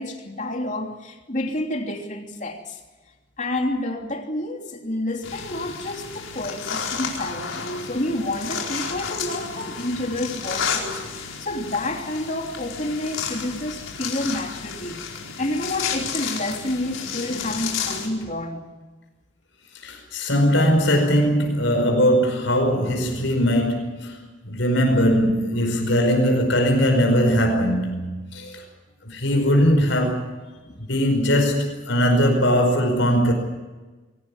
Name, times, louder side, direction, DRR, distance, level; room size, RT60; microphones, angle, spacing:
voice 1, 0.0-2.8 3.4-15.0 15.4-18.7 30.6-30.8, left 1 dB, 40° left, 3.1 m, -29 dB
sound 1, 5.2-18.1, left 6 dB, 90° left, 4.7 m, -32 dB
voice 2, 19.8-24.2 24.4-28.6 29.0-30.4 30.8-33.3, equal, 70° left, 5.3 m, -20 dB
22.5 x 19.0 x 9.7 m
head